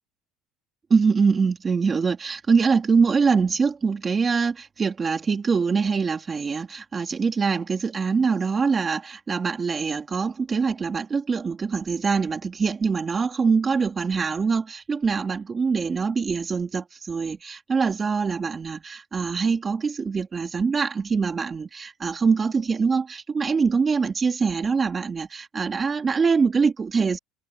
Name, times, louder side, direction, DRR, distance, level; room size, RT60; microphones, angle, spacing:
voice 1, 0.9-27.2, right 5 dB, 20° right, 3.5 m, -24 dB
cardioid pair, 150°, 0 cm